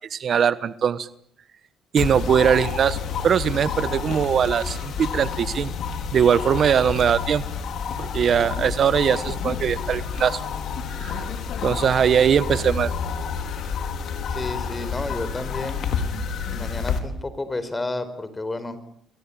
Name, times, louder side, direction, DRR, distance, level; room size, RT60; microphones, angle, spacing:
voice 1, 0.1-1.1 1.9-3.0 3.2-5.7 6.1-7.4 8.0-10.4 11.0-11.2 11.6-12.9, right 8 dB, 50° right, 15 dB, 1.2 m, -21 dB
sound 1, 2.0-17.0, left 6 dB, 65° left, 4.7 m, -29 dB
voice 2, 14.3-15.8 16.5-18.8, left 2 dB, 15° left, 13 dB, 4.9 m, -31 dB
28.5 x 23.5 x 8.8 m, 0.66 s
cardioid pair, 100°, 0 cm